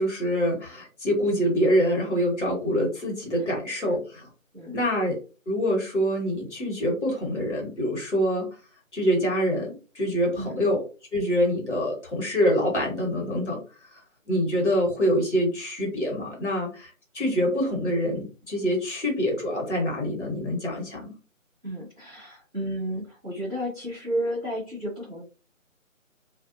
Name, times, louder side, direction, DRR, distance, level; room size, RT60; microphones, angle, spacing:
voice 1, 0.0-4.3 4.7-5.2 5.5-8.5 8.9-10.8 11.1-13.6 14.3-21.1, equal, 55° left, -1 dB, 1.4 m, -25 dB
voice 2, 3.4-3.9 4.5-4.8 10.4-10.6 21.6-25.2, equal, 5° left, -17 dB, 0.9 m, -32 dB
2.5 x 2.1 x 2.5 m, 0.34 s
figure-of-eight pair, 160°, 41 cm